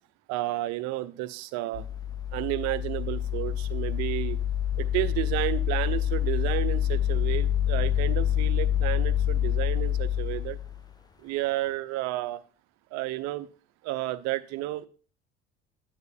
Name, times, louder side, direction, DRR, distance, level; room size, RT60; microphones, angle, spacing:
voice 1, 0.3-1.8 2.3-4.4 4.8-10.6 11.2-12.4 12.9-13.5 13.8-14.9, right 16 dB, 55° right, 14 dB, 0.7 m, -31 dB
sound 1, 1.7-10.8, left 10 dB, 15° left, 0.3 m, -27 dB
9.4 x 9.4 x 2.2 m, 0.37 s
figure-of-eight pair, 55°, 32 cm